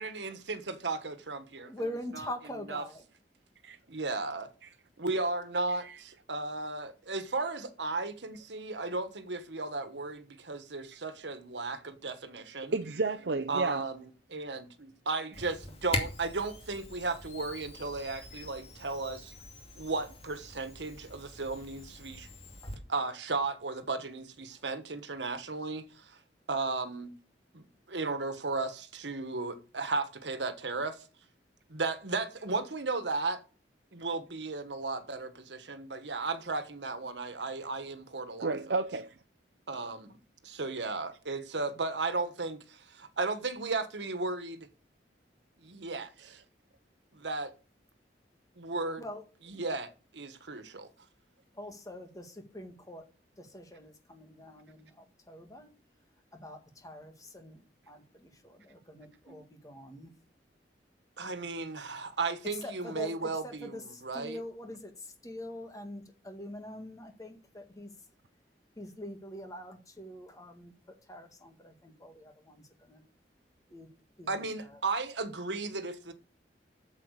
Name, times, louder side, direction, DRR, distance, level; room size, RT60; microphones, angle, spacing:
voice 1, 0.0-1.9 2.1-2.3 2.7-2.9 3.9-4.5 5.0-12.7 13.5-19.3 19.7-22.3 22.9-26.2 26.5-27.1 27.5-31.1 31.7-33.4 33.9-38.5 39.7-40.2 40.4-44.7 45.6-46.4 47.1-47.5 48.6-49.0 49.4-50.9 61.2-64.4 74.3-76.1, right 3 dB, 85° right, 1.4 m, -35 dB
voice 2, 1.6-3.0 22.6-22.7 49.0-49.2 51.5-53.0 53.4-55.7 56.3-60.1 62.6-67.9 68.8-73.0 73.7-73.9 74.2-74.8, left 1 dB, 20° left, 1.9 m, -44 dB
voice 3, 12.6-13.8 38.4-39.2, right 3 dB, 70° right, 0.6 m, -31 dB
Camera, 15.3-22.8, left 2 dB, 35° left, 2.4 m, -42 dB
9.0 x 7.5 x 6.5 m
head